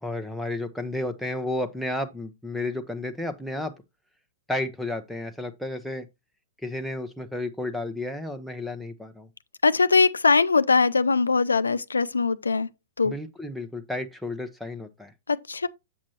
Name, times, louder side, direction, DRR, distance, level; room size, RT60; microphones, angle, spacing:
voice 1, 0.0-3.8 4.5-6.1 6.6-9.3 13.0-15.1, left 1 dB, ahead, 0.8 m, -32 dB
voice 2, 9.6-12.7 13.0-13.1 15.3-15.7, left 4 dB, 80° left, 0.4 m, -21 dB
7.6 x 7.3 x 2.9 m
figure-of-eight pair, 105°, 0 cm